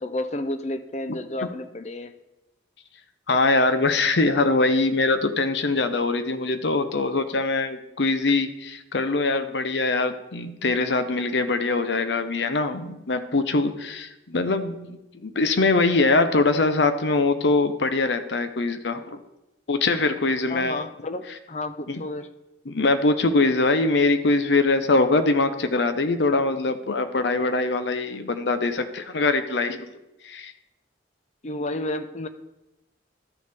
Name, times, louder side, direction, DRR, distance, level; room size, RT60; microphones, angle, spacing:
voice 1, 0.0-2.1 20.5-22.3 31.4-32.3, left 1 dB, 40° left, 10 dB, 0.5 m, -31 dB
voice 2, 3.3-19.2 19.7-20.8 21.9-22.0 22.7-29.9 30.2-30.5, left 3 dB, 70° left, 9 dB, 0.7 m, -23 dB
12.5 x 6.6 x 3.5 m, 0.95 s
head